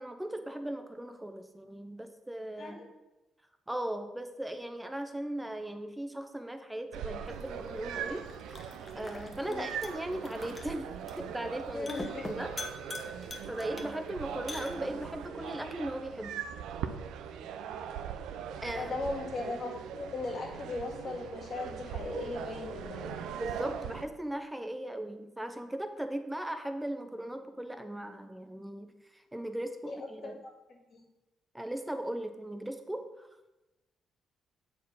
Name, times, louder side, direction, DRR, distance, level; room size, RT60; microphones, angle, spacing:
voice 1, 0.0-2.8 3.7-8.3 8.9-10.9 11.2-11.9 12.3-12.5 13.5-16.4 18.6-18.9 23.3-30.4 31.5-33.3, right 1 dB, 10° right, 7 dB, 0.8 m, -38 dB
sound 1, 6.9-24.0, right 8 dB, 90° right, 0.5 m, -40 dB
sound 2, 7.2-15.2, left 2 dB, 20° left, 1.1 m, -46 dB
voice 2, 11.7-12.3 18.8-23.1 29.9-30.0 30.2-30.5 30.9-31.0, left 3 dB, 50° left, 0 dB, 2.1 m, -38 dB
7.4 x 4.5 x 5.3 m, 1.0 s
cardioid pair, 90°, 0 cm